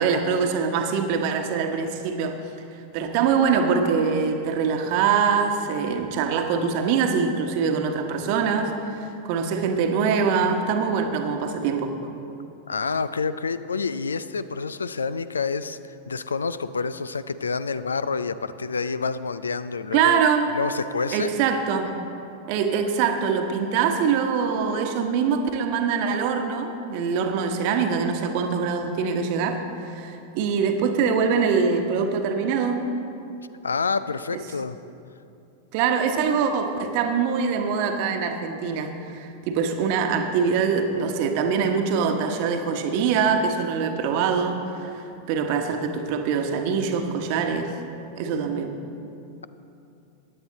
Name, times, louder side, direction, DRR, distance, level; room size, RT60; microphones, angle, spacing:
voice 1, 0.0-2.4 2.9-11.9 19.9-20.5 21.1-21.9 22.5-32.8 35.7-47.7 48.2-48.7, right 6 dB, 45° right, 5 dB, 1.1 m, -24 dB
voice 2, 12.7-15.8 16.1-20.2 20.5-21.3 33.6-34.8, left 5 dB, 75° left, 15 dB, 0.4 m, -28 dB
15.5 x 10.0 x 4.0 m, 2.7 s
figure-of-eight pair, 90°, 0 cm